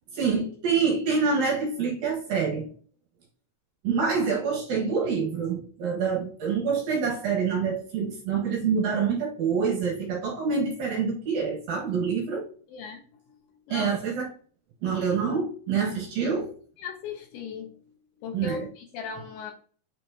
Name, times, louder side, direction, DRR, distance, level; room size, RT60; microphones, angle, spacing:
voice 1, 0.1-2.7 3.8-12.5 13.7-14.3 14.8-16.5 18.3-18.7, right 5 dB, 60° right, -2 dB, 2.9 m, -26 dB
voice 2, 12.7-13.4 13.7-13.9 16.2-16.3 16.8-19.5, left 5 dB, 75° left, 4 dB, 3.1 m, -38 dB
9.1 x 5.1 x 2.8 m, 0.43 s
omnidirectional pair, 5.5 m